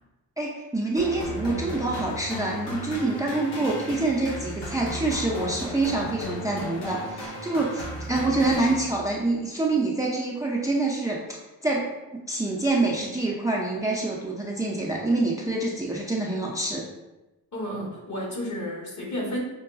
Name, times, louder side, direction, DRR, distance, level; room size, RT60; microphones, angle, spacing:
voice 1, 0.4-11.2 11.6-11.9 12.3-16.9, right 2 dB, 10° right, -3 dB, 0.6 m, -26 dB
sound 1, 1.0-9.3, equal, 75° left, 1.2 m, -35 dB
voice 2, 17.5-19.4, equal, 45° left, -2 dB, 1.5 m, -32 dB
5.5 x 2.2 x 2.5 m, 1.0 s
supercardioid pair, 50°, 42 cm